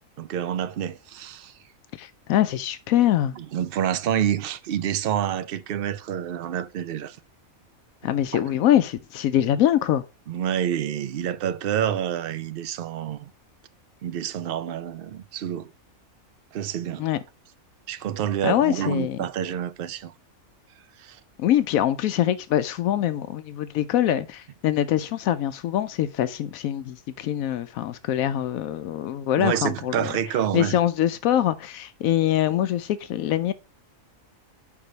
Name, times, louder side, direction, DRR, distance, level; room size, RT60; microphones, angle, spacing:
voice 1, 0.2-1.5 3.4-7.2 8.3-8.4 10.3-13.3 14.0-15.7 16.5-17.0 17.9-20.1 21.0-21.2 29.4-30.8, right 9 dB, 60° right, 0.6 m, -28 dB
voice 2, 2.0-3.3 8.0-10.0 17.0-17.2 18.4-19.2 21.4-30.1 30.5-33.5, left 11 dB, 85° left, 1.0 m, -24 dB
5.4 x 4.9 x 5.1 m
omnidirectional pair, 1.4 m